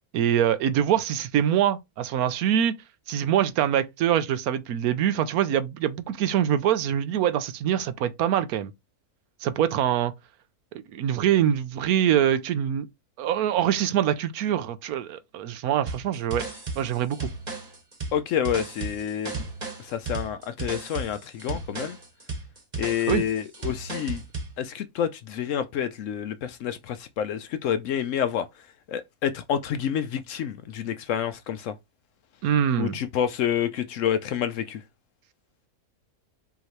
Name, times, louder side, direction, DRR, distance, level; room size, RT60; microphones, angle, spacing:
voice 1, 0.1-2.7 3.1-8.7 9.4-10.1 10.9-12.9 13.2-16.5 16.8-17.3 23.1-23.2 32.4-33.0, right 10 dB, 80° right, 1.1 m, -24 dB
sound 1, 15.9-24.5, right 3 dB, 30° right, 1.4 m, -34 dB
voice 2, 18.1-19.4 19.8-22.0 22.8-24.2 24.6-28.5 28.9-31.8 32.8-34.8, left 9 dB, 70° left, 0.8 m, -28 dB
5.6 x 3.0 x 3.0 m
omnidirectional pair, 1.6 m